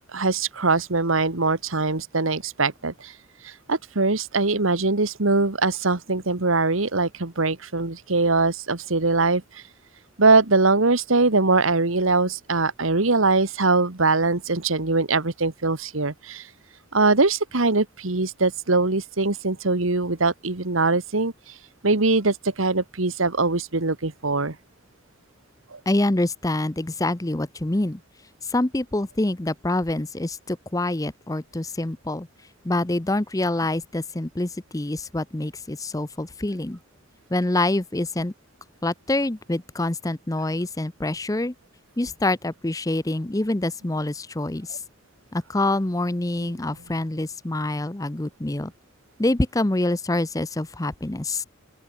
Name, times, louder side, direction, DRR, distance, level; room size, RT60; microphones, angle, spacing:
voice 1, 0.1-3.2 3.4-9.6 10.2-16.5 16.9-21.6 21.8-24.6 25.7-25.8 44.7-44.8 46.4-46.5, right 3 dB, 85° right, 1.8 m, -22 dB
voice 2, 25.9-28.0 28.5-32.3 32.6-36.8 37.3-38.3 38.8-41.5 42.0-44.8 45.3-48.7 49.2-51.4, left 2 dB, 15° left, 0.7 m, -26 dB
open air
head